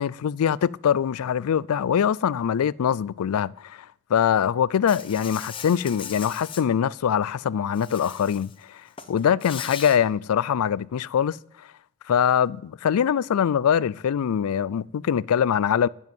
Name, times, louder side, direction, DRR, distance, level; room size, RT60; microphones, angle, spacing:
voice 1, 0.0-8.8 9.1-11.4 12.1-15.9, left 8 dB, 85° left, 0.4 m, -23 dB
Insect, 4.9-6.6 7.7-8.5 8.9-10.0, left 7 dB, 25° left, 0.8 m, -39 dB
11.0 x 7.1 x 9.0 m
head